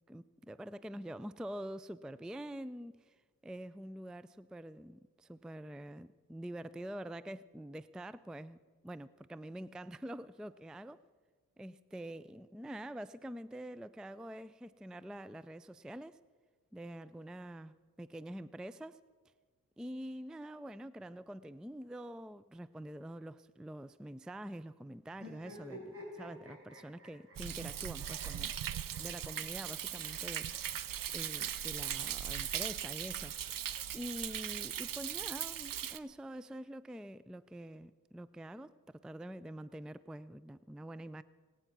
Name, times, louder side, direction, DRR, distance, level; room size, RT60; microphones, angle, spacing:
voice 1, 0.1-8.6 8.8-11.0 11.6-16.2 16.7-19.0 19.8-28.5 29.0-30.8 31.1-33.7 33.9-41.2, right 1 dB, ahead, 16 dB, 0.4 m, -46 dB
sound 1, 25.1-27.7 28.0-29.3 29.6-29.7 30.0-30.1 30.5-30.6 31.6-32.6, equal, 40° right, 5.1 m, -52 dB
Thunder, 27.4-36.0, right 10 dB, 70° right, 0.7 m, -39 dB
26.0 x 9.1 x 6.0 m, 1.5 s
cardioid pair, 55°, 35 cm